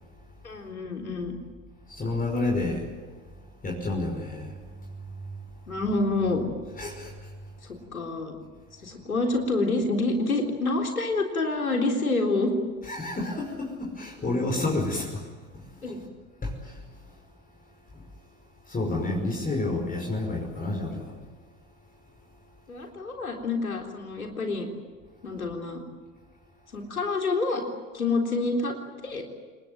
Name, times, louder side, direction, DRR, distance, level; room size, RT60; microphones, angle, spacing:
voice 1, 0.4-1.3 5.7-6.4 7.9-8.4 8.8-12.6 14.2-14.6 15.8-16.0 22.7-24.7 25.2-25.8 26.7-27.6 27.9-28.7 29.0-29.2, left 3 dB, 90° left, 3 dB, 3.8 m, -27 dB
voice 2, 1.9-2.9 3.6-4.6 5.1-5.4 6.8-7.3 12.9-15.2 15.5-16.0 16.4-16.8 17.1-17.2 17.9-18.1 18.7-21.2, left 2 dB, 20° left, 0 dB, 5.6 m, -30 dB
29.0 x 19.5 x 9.3 m, 1.4 s
figure-of-eight pair, 75°, 41 cm